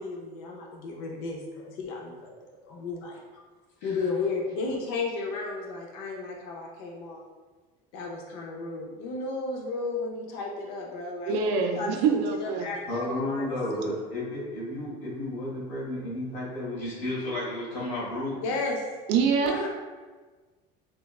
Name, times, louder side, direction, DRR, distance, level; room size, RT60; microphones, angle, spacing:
voice 1, 0.0-2.3 2.6-3.2 3.8-7.2 7.9-11.4 11.7-13.8 18.4-18.8 19.4-19.7, left 3 dB, 90° left, 0 dB, 0.5 m, -33 dB
voice 2, 11.3-12.7 19.1-19.5, right 5 dB, 65° right, 4 dB, 0.4 m, -25 dB
voice 3, 12.9-18.4, left 1 dB, 60° left, -7 dB, 1.4 m, -32 dB
3.2 x 2.1 x 2.3 m, 1.3 s
cardioid pair, 135°, 19 cm